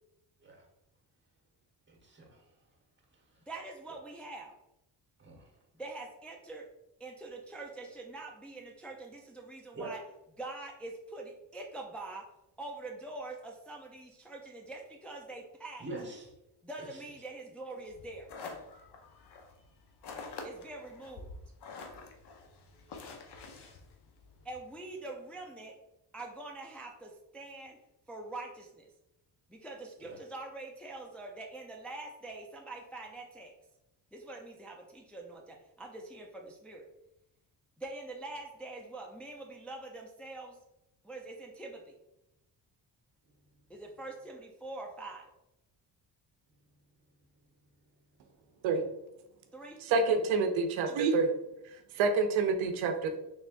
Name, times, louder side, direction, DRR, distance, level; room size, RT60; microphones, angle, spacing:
voice 1, 1.9-2.4 5.2-5.4 9.7-10.0 15.8-16.3 16.8-17.0 22.9-23.8 30.0-30.2, right 2 dB, 25° right, 0 dB, 1.2 m, -45 dB
voice 2, 3.5-4.5 5.7-6.7 7.0-10.0 10.4-12.3 12.6-15.9 16.6-18.3 20.4-21.3 24.4-25.7 26.1-27.8 28.1-28.9 29.5-33.5 34.1-36.8 37.8-40.6 41.0-41.9 43.7-45.3 49.5-49.8, right 2 dB, 5° left, 0 dB, 0.5 m, -44 dB
sound 1, 17.9-24.6, left 4 dB, 60° left, 0.7 m, -47 dB
voice 3, 49.8-51.3 51.9-53.2, right 4 dB, 85° right, 6 dB, 0.6 m, -27 dB
3.5 x 3.3 x 2.5 m, 0.88 s
cardioid pair, 75°, 46 cm